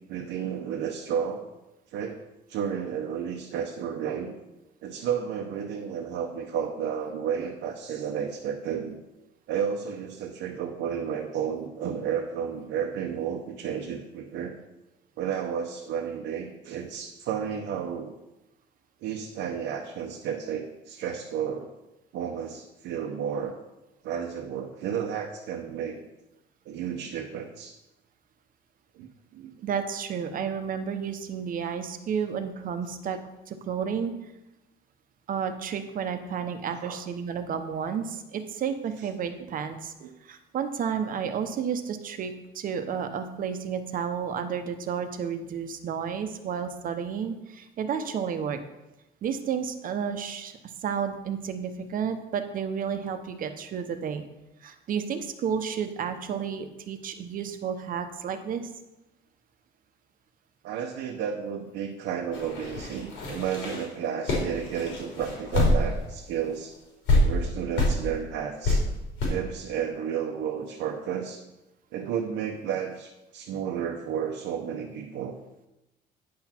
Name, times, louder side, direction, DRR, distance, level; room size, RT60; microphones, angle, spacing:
voice 1, 0.1-1.5 1.9-2.2 2.5-4.3 4.8-9.0 9.5-14.6 15.2-18.1 19.0-21.7 22.1-23.5 24.0-26.0 26.7-27.7 29.0-29.1 29.3-29.5 36.8-37.0 39.4-39.5 40.0-40.1 60.6-66.8 67.2-68.8 69.3-71.4 71.9-75.3, right 8 dB, 80° right, 2 dB, 0.8 m, -32 dB
voice 2, 29.6-33.2 33.5-34.1 35.3-39.9 40.2-48.6 49.2-54.2 54.6-58.7, right 7 dB, 50° right, 8 dB, 0.9 m, -31 dB
sound 1, 62.3-66.1 66.4-66.5 67.1-67.2 67.8-68.0 68.6-68.8 69.2-69.3, left 2 dB, 85° left, 3.3 m, -25 dB
9.6 x 6.0 x 4.4 m, 0.97 s
cardioid pair, 135°, 18 cm